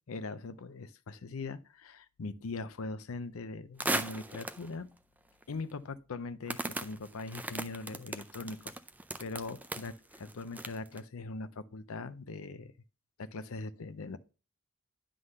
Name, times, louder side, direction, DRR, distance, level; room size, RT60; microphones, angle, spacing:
voice 1, 0.1-4.9 5.5-8.7 9.2-12.7 13.2-14.2, left 3 dB, 80° left, 0.6 m, -41 dB
sound 1, 3.8-4.7 5.4-5.5 6.5-11.0, right 2 dB, 5° right, 0.4 m, -37 dB
9.7 x 3.9 x 6.4 m
head